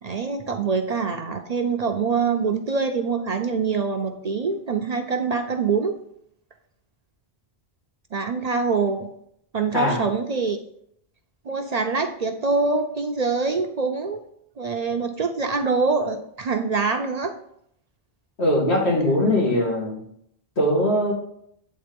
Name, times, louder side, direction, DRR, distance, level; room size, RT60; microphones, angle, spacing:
voice 1, 0.0-6.0 8.1-9.1 9.5-10.6 11.5-14.2 14.6-17.3, right 4 dB, 50° right, 6 dB, 0.6 m, -24 dB
voice 2, 18.4-20.0 20.6-21.1, left 1 dB, 90° left, -3 dB, 2.4 m, -21 dB
8.7 x 3.7 x 5.2 m, 0.71 s
omnidirectional pair, 1.1 m